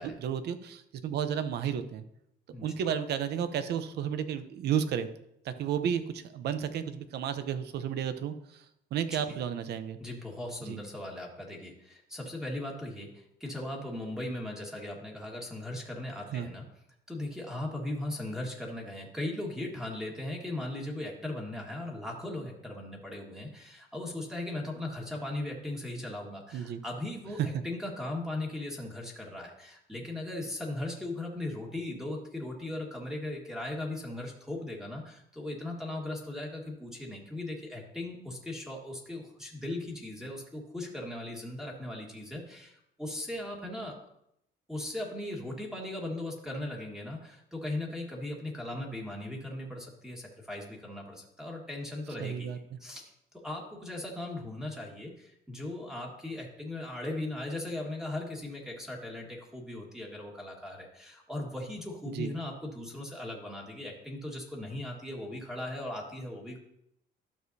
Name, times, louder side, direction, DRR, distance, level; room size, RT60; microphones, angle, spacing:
voice 1, 0.2-2.0 2.6-5.1 5.4-8.3 8.9-10.0 10.7-10.8 16.3-16.5 26.5-26.8 52.2-52.6 62.1-62.3, right 8 dB, 60° right, 11 dB, 0.7 m, -32 dB
voice 2, 10.0-16.6 17.1-44.0 44.7-53.1 53.4-66.6, left 1 dB, 5° right, -1 dB, 1.6 m, -38 dB
12.0 x 6.3 x 2.7 m, 0.76 s
cardioid pair, 130°, 19 cm